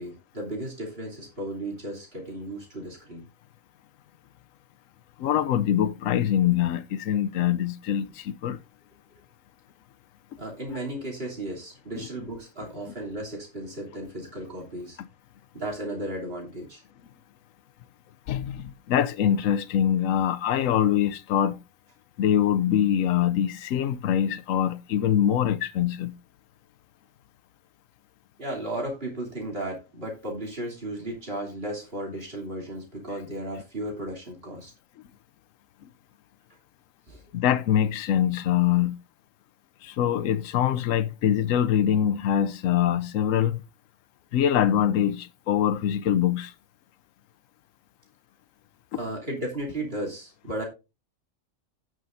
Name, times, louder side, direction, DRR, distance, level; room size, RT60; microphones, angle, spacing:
voice 1, 0.0-3.2 10.4-15.0 15.5-16.8 28.4-34.7 37.1-37.2 48.9-50.6, right 1 dB, 50° right, 3.3 m, -35 dB
voice 2, 5.2-8.6 11.9-12.1 15.0-15.1 18.3-21.6 22.2-26.1 35.8-35.9 37.3-39.0 39.8-43.6 44.3-46.5 48.9-49.0, left 10 dB, 85° left, 1.0 m, -24 dB
16.5 x 6.3 x 2.6 m
omnidirectional pair, 1.3 m